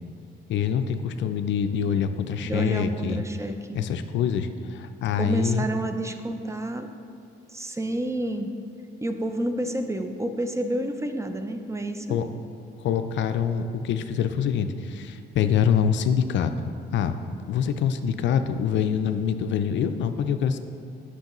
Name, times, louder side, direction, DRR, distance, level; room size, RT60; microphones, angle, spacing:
voice 1, 0.5-3.2 3.7-5.7 12.1-12.3 12.8-17.1 17.5-20.6, left 7 dB, 70° left, 9 dB, 0.4 m, -25 dB
voice 2, 2.4-3.8 5.2-6.9 7.5-8.5 9.0-12.2, right 1 dB, 15° right, 6 dB, 0.4 m, -29 dB
7.9 x 6.0 x 3.0 m, 2.4 s
cardioid pair, 90°, 20 cm